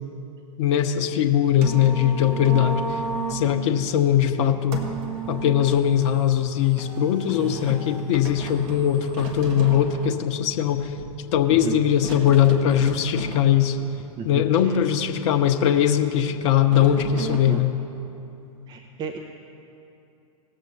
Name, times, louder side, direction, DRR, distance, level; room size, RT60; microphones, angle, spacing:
voice 1, 0.6-3.0 3.3-4.8 5.3-10.9 11.3-13.8 14.2-17.7, left 10 dB, 50° left, 6 dB, 0.9 m, -20 dB
sound 1, 1.2-17.6, right 3 dB, 45° right, 1.7 m, -35 dB
voice 2, 11.5-11.8 14.2-14.8 17.5-17.6 18.7-19.2, right 5 dB, 25° right, 4 dB, 0.7 m, -33 dB
19.0 x 7.2 x 4.0 m, 2.7 s
figure-of-eight pair, 105°, 19 cm